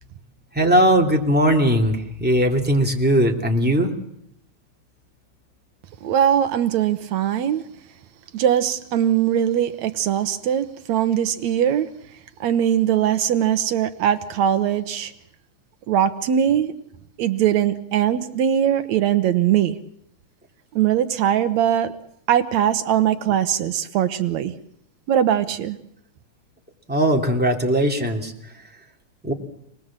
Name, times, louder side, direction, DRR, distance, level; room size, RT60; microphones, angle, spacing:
voice 1, 0.5-3.9 26.9-28.3 29.2-29.3, equal, 5° right, 1 dB, 2.6 m, -19 dB
voice 2, 6.0-7.6 8.3-11.9 12.4-15.1 15.9-16.7 17.2-19.8 20.7-21.9 22.3-24.5 25.1-25.8, right 10 dB, 70° right, 10 dB, 2.2 m, -21 dB
27.5 x 19.5 x 7.5 m, 0.76 s
omnidirectional pair, 3.4 m